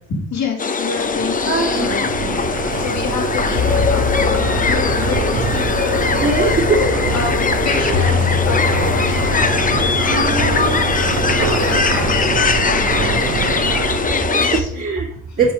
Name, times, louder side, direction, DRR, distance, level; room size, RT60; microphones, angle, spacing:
voice 1, 0.1-2.0 2.5-6.2 7.1-13.4 14.5-14.8 15.3-15.4, left 5 dB, 65° left, 2 dB, 2.4 m, -29 dB
sound 1, 0.6-14.6, left 4 dB, 25° left, 0.8 m, -20 dB
sound 2, 0.9-14.3, right 6 dB, 65° right, 1.0 m, -24 dB
voice 2, 1.5-1.9 2.2-2.4 2.7-2.8 6.2-6.8 10.1-10.8 12.4-12.6 14.0-15.1 15.4-15.5, right 4 dB, 45° right, -5 dB, 2.4 m, -21 dB
sound 3, 3.6-12.3, left 9 dB, 45° left, 0.4 m, -25 dB
6.8 x 5.7 x 5.0 m, 0.67 s
cardioid pair, 90°, 30 cm